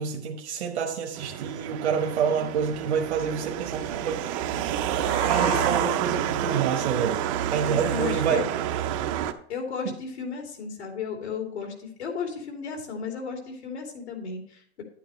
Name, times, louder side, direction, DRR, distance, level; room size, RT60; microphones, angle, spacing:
voice 1, 0.0-4.2 5.2-7.2 7.5-8.5, right 6 dB, 75° right, 1.2 m, -28 dB
sound 1, 1.2-9.3, right 10 dB, 30° right, 0.5 m, -28 dB
Meow, 4.7-5.8, left 10 dB, 35° left, 0.5 m, -36 dB
voice 2, 7.7-8.4 9.5-14.8, left 6 dB, 75° left, 3.0 m, -34 dB
9.8 x 9.2 x 3.1 m
hypercardioid pair, 145°, 34 cm